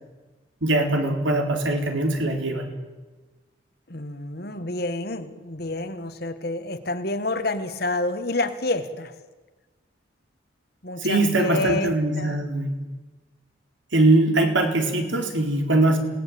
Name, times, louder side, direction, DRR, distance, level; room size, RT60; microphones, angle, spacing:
voice 1, 0.6-2.7 11.0-12.7 13.9-16.0, right 2 dB, 75° right, 4 dB, 4.0 m, -21 dB
voice 2, 3.9-9.1 10.8-12.5, left 2 dB, 50° left, 9 dB, 1.7 m, -28 dB
28.0 x 18.5 x 8.7 m, 1.2 s
head